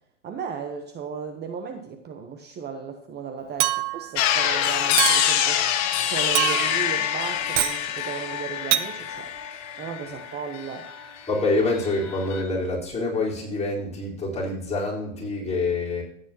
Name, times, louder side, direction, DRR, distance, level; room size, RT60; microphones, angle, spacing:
voice 1, 0.2-5.7 6.0-9.3 9.8-10.9, right 6 dB, 25° right, 5 dB, 1.0 m, -35 dB
Chink clink, 3.6-4.1 5.0-5.4 6.4-6.9 7.6-7.8 8.7-8.9, right 14 dB, 65° right, 0.7 m, -24 dB
sound 1, 4.2-11.3 11.6-12.4, left 10 dB, 45° left, 1.7 m, -25 dB
voice 2, 11.3-16.0, left 2 dB, 15° left, -5 dB, 4.3 m, -26 dB
14.5 x 9.2 x 2.9 m, 0.72 s
hypercardioid pair, 115°, 38 cm